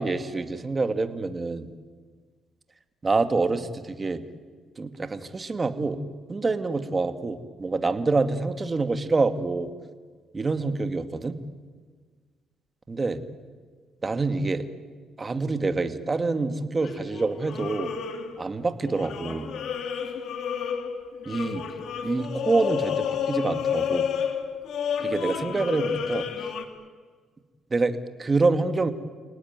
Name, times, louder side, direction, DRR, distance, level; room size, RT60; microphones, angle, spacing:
voice 1, 0.0-1.7 3.0-4.2 4.8-6.0 6.3-9.7 10.3-11.4 12.9-13.2 14.0-14.7 15.2-17.9 18.4-19.5 21.3-21.6 22.0-24.1 25.0-26.3 27.7-28.9, right 3 dB, 30° right, 9 dB, 2.1 m, -26 dB
sound 1, 16.8-18.6 18.9-26.6, left 7 dB, 70° left, 2.7 m, -30 dB
29.0 x 18.5 x 9.7 m, 1.5 s
cardioid pair, 90°, 0 cm